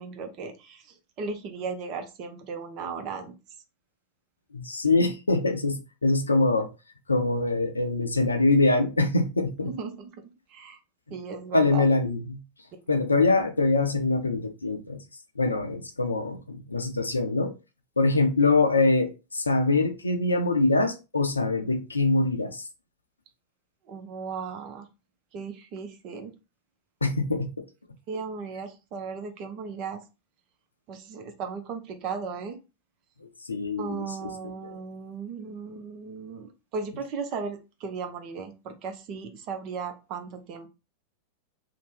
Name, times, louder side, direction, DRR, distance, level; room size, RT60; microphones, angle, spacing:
voice 1, 0.0-3.3 9.6-10.2 10.5-10.8 11.1-11.8 23.9-24.9 25.3-26.3 28.1-30.0 30.9-32.6 33.8-40.7, right 5 dB, 40° right, 0.6 m, -36 dB
voice 2, 4.5-6.7 7.1-9.7 11.5-12.4 12.9-15.0 15.4-17.5 18.0-22.6 27.0-27.5 33.2-34.5, left 3 dB, 80° left, 0.5 m, -24 dB
2.8 x 2.1 x 3.2 m
figure-of-eight pair, 90°, 0 cm